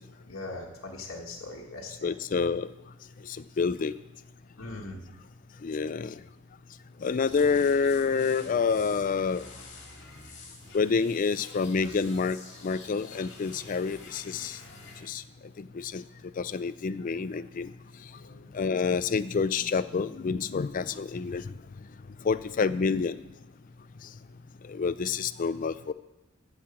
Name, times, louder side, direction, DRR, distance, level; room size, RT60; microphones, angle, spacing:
voice 1, 0.3-2.1 4.6-5.0 18.2-18.5, left 2 dB, 80° left, -1 dB, 1.5 m, -40 dB
voice 2, 2.0-2.7 3.6-3.9 5.6-6.1 7.0-9.5 10.7-12.4 12.6-14.6 15.1-15.2 15.6-16.0 16.4-17.7 18.5-21.4 22.2-23.2 24.7-25.9, left 5 dB, 40° left, 14 dB, 0.4 m, -28 dB
sound 1, 7.3-15.0, left 3 dB, 55° left, 2.3 m, -48 dB
14.5 x 4.8 x 7.1 m, 1.0 s
head